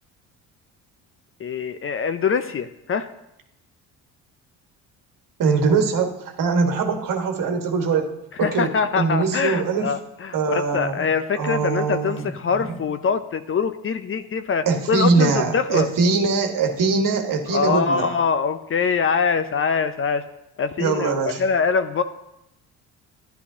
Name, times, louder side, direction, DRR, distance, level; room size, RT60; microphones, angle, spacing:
voice 1, 1.4-3.1 8.4-15.9 17.5-20.2 20.6-22.0, left 6 dB, 35° left, 11 dB, 0.5 m, -23 dB
voice 2, 5.4-8.1 8.4-8.7 9.0-9.9 10.3-11.0 11.3-12.8 14.6-18.2 20.8-21.4, right 4 dB, 55° right, 4 dB, 1.5 m, -22 dB
11.0 x 10.0 x 2.8 m, 0.86 s
supercardioid pair, 70°, 39 cm